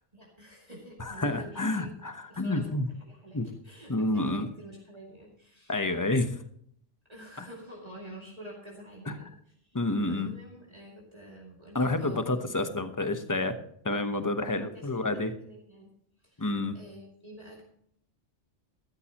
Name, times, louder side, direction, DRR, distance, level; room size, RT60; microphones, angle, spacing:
voice 1, 0.1-1.9 2.3-2.7 3.0-5.8 7.1-9.8 10.1-12.5 14.4-15.9 16.2-17.6, equal, 30° right, -4 dB, 2.7 m, -48 dB
voice 2, 1.0-2.9 3.3-3.5 3.9-4.5 5.7-6.3 7.4-7.5 9.1-9.2 9.7-10.3 11.7-13.6 13.8-15.3 16.4-16.8, left 2 dB, 15° left, 8 dB, 0.9 m, -29 dB
14.0 x 13.0 x 3.0 m, 0.67 s
omnidirectional pair, 1.2 m